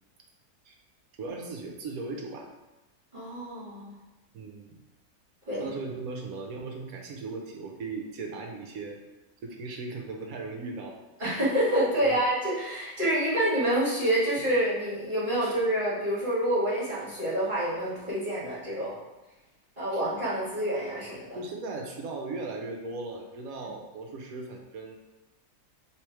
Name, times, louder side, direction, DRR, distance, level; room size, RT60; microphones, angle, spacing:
voice 1, 1.2-2.5 4.3-4.7 5.6-9.0 9.4-11.0 12.0-12.1 15.4-15.5 19.9-20.0 21.3-25.0, right 3 dB, 70° right, 1 dB, 1.1 m, -37 dB
voice 2, 3.1-3.9 5.5-5.8 11.2-18.9 19.8-21.4, right 1 dB, 30° right, -9 dB, 1.6 m, -27 dB
3.4 x 3.2 x 4.5 m, 1.0 s
omnidirectional pair, 1.6 m